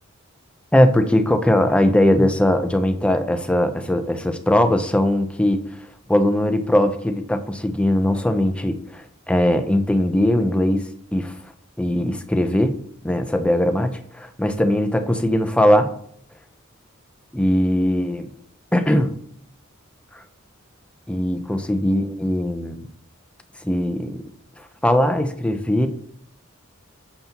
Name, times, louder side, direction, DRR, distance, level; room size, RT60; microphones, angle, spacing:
voice 1, 0.7-5.6 6.1-10.8 11.1-11.3 11.8-12.8 13.0-15.9 17.3-18.3 18.7-19.1 21.1-22.9 23.6-24.2 24.8-25.9, left 1 dB, 5° left, 7 dB, 0.6 m, -20 dB
9.3 x 7.2 x 2.9 m, 0.65 s
head